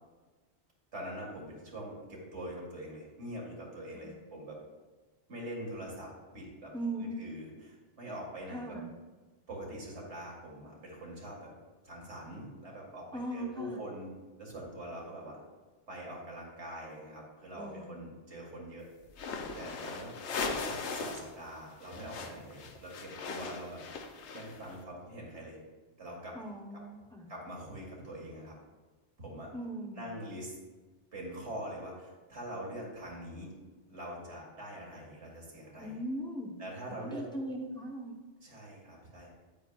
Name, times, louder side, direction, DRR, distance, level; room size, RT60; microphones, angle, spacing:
voice 1, 0.9-4.6 5.3-6.7 7.0-8.8 9.5-11.5 11.8-14.1 14.4-15.4 15.9-18.9 19.6-20.2 20.6-23.8 24.3-25.6 26.0-26.4 27.3-28.5 29.2-29.5 29.9-30.5 31.1-33.5 33.9-36.0 36.6-37.2 38.4-39.3, right 1 dB, 90° right, -2 dB, 2.4 m, -44 dB
voice 2, 6.7-7.3 8.5-8.9 13.1-13.8 17.5-17.9 26.3-27.3 29.5-30.1 35.8-36.5 36.9-38.2, right 1 dB, 5° left, -1 dB, 0.9 m, -39 dB
sound 1, 19.1-21.3 21.6-24.7, left 4 dB, 80° left, 1.1 m, -39 dB
9.2 x 8.5 x 2.4 m, 1.3 s
omnidirectional pair, 1.1 m